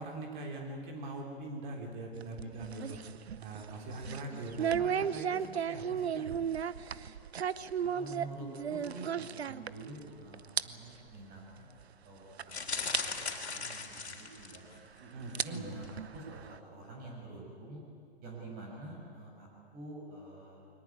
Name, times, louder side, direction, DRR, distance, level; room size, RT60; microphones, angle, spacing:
voice 1, 0.0-3.0 3.4-6.3 15.0-15.8, right 2 dB, 50° right, 2 dB, 3.6 m, -42 dB
sound 1, 2.1-10.1 10.3-10.6 10.9-11.1 11.8-11.9 12.4-12.5 12.9-13.0 14.4-14.5 15.2-16.6, right 8 dB, 80° right, 0.9 m, -35 dB
voice 2, 7.8-11.7 12.0-12.2 12.4-14.6 15.2-17.8 18.2-19.5 19.7-20.6, right 2 dB, 25° right, -1 dB, 6.4 m, -47 dB
sound 2, 12.5-14.8 15.3-15.6 15.8-15.9, left 4 dB, 85° left, 3.4 m, -38 dB
22.5 x 19.0 x 9.8 m, 2.4 s
hypercardioid pair, 130°, 32 cm